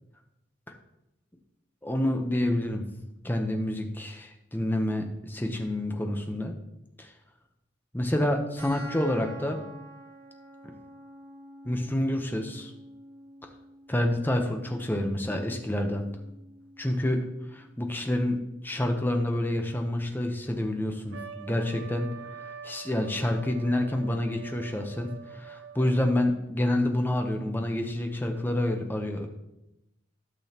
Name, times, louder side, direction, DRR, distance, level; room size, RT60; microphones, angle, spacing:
voice 1, 1.8-2.8 3.2-6.5 7.0-7.1 7.9-9.6 11.6-12.7 13.9-16.1 16.8-17.2 17.5-18.4 18.6-22.1 22.6-29.3, left 1 dB, 10° left, 4 dB, 0.8 m, -28 dB
sound 1, 8.6-19.6, equal, 50° right, 1.9 m, -49 dB
Trumpet, 21.1-26.1, right 6 dB, 75° right, 0.4 m, -45 dB
12.0 x 6.2 x 2.9 m, 0.89 s
head